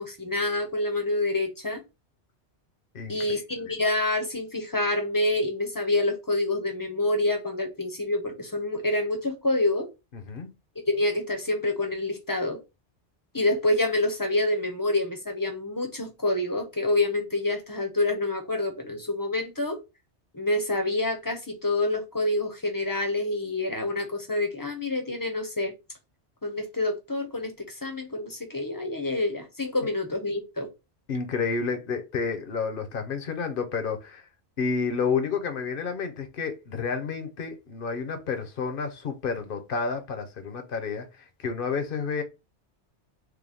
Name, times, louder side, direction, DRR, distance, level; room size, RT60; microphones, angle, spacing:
voice 1, 0.0-1.8 3.1-9.9 10.9-12.6 13.3-19.8 20.3-25.7 26.4-30.7, left 2 dB, 20° left, 0.7 m, -27 dB
voice 2, 10.1-10.5 31.1-34.3 34.6-42.2, left 5 dB, 55° left, 0.9 m, -30 dB
4.7 x 2.2 x 3.4 m
omnidirectional pair, 1.2 m